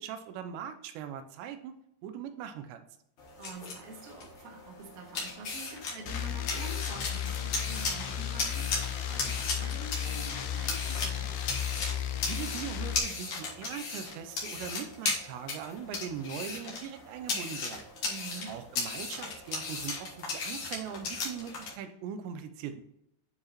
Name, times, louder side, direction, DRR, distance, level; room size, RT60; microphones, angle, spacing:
voice 1, 0.0-1.7 2.0-2.8 12.3-17.8 18.5-22.8, right 8 dB, 90° right, 9 dB, 2.9 m, -40 dB
sound 1, 3.2-21.7, left 3 dB, 55° left, 2.0 m, -37 dB
voice 2, 3.4-11.4 18.0-18.5, right 3 dB, 50° right, 0 dB, 2.0 m, -46 dB
sound 2, 6.1-13.0, left 9 dB, 80° left, 2.6 m, -34 dB
9.9 x 4.8 x 3.0 m, 0.77 s
omnidirectional pair, 4.9 m